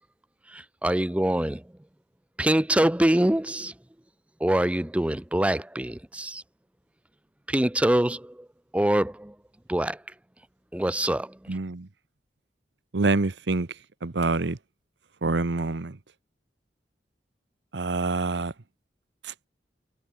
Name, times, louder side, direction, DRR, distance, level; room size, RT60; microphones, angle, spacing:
voice 1, 0.5-1.6 2.4-3.7 4.4-6.4 7.5-8.5 8.7-9.3 9.7-10.0 10.7-11.3, right 1 dB, 5° right, 0.4 m, -24 dB
voice 2, 11.5-11.9 12.9-13.7 14.0-14.6 15.2-16.0 17.7-18.5 19.2-19.3, right 3 dB, 80° right, 1.0 m, -26 dB
head